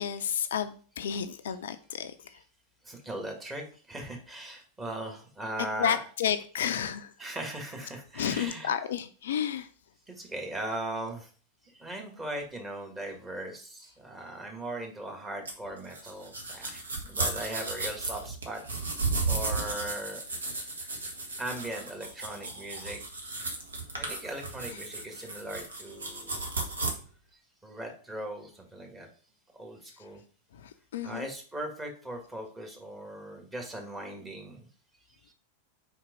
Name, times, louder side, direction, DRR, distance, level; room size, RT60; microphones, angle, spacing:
voice 1, 0.0-2.4 5.8-7.1 8.1-9.7 30.5-31.3, left 8 dB, 60° left, 0.5 m, -31 dB
voice 2, 2.9-6.0 7.2-8.8 9.4-9.5 10.1-11.3 11.7-18.6 19.3-20.2 21.4-23.0 24.0-26.5 27.6-29.1 29.6-30.2 31.0-34.6, right 1 dB, 15° right, 1.9 m, -39 dB
sound 1, 15.5-26.9, right 3 dB, 70° right, 1.4 m, -34 dB
4.6 x 4.3 x 5.1 m
figure-of-eight pair, 90°, 0 cm